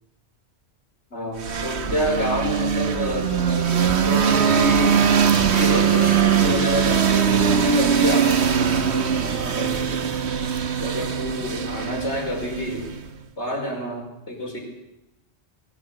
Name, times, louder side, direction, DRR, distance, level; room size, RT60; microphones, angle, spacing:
voice 1, 1.1-10.2 10.8-12.9 13.4-14.6, left 1 dB, 90° left, 1 dB, 5.4 m, -28 dB
sound 1, 1.4-13.1, right 8 dB, 75° right, 1.5 m, -21 dB
20.5 x 17.5 x 8.3 m, 0.89 s
omnidirectional pair, 1.1 m